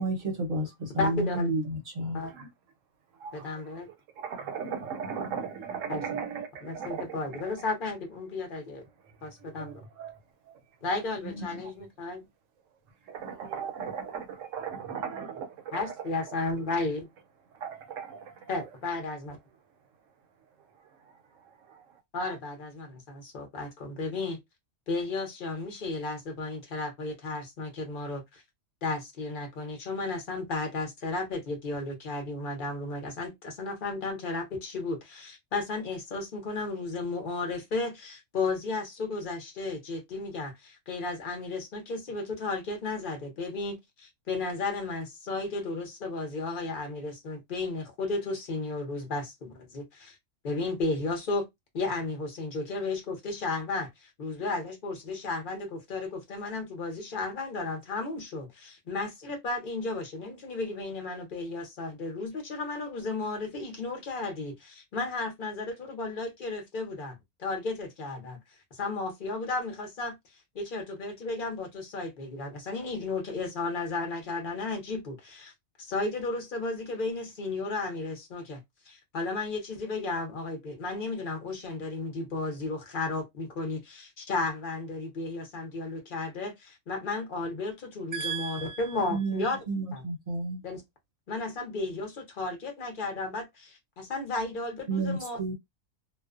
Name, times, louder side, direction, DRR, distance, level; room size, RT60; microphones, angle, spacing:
voice 1, 0.0-2.2 88.1-90.6 94.9-95.5, right 2 dB, 45° right, 0.8 m, -31 dB
voice 2, 1.0-1.5 2.1-2.3 3.3-3.9 5.9-6.2 6.6-8.8 9.2-9.8 10.8-12.3 15.7-17.1 18.5-19.4 22.1-24.4 24.9-28.4 28.8-50.2 50.4-51.5 51.7-68.4 68.7-70.1 70.5-75.5 75.8-78.6 78.9-89.6 89.9-90.0 90.6-90.8 91.3-95.4, left 3 dB, 45° left, 0.8 m, -34 dB
voice 3, 4.2-7.0 9.6-9.7 10.0-10.1 11.5-11.6 13.1-15.5, right 6 dB, 75° right, 0.9 m, -36 dB
2.4 x 2.2 x 2.4 m
omnidirectional pair, 1.4 m